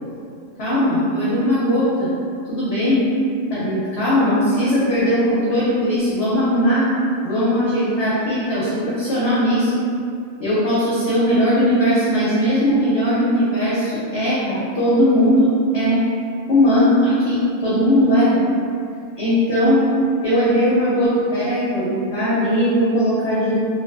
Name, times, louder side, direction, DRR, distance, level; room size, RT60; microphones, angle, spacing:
voice 1, 0.6-2.1 2.5-3.1 3.5-6.9 7.2-9.7 10.4-16.0 16.5-18.4 19.2-19.9 20.2-23.5, equal, 60° left, -9 dB, 0.7 m, -18 dB
3.3 x 2.2 x 2.2 m, 2.4 s
omnidirectional pair, 1.5 m